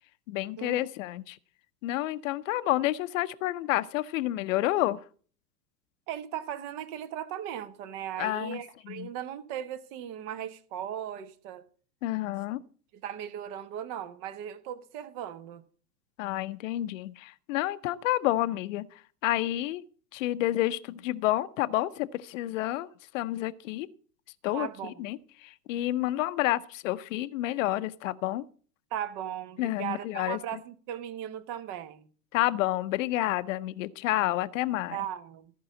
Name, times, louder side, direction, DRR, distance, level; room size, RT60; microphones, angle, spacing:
voice 1, 0.3-1.4 1.8-5.0 8.2-9.1 12.0-12.6 16.2-19.8 20.1-22.9 23.1-23.9 24.4-28.4 29.6-30.6 32.3-35.0, left 15 dB, 50° left, 0.7 m, -29 dB
voice 2, 6.1-11.6 13.0-15.6 24.5-25.1 28.9-32.1 34.9-35.5, right 10 dB, 40° right, 1.2 m, -37 dB
14.0 x 5.5 x 7.4 m
figure-of-eight pair, 95°, 49 cm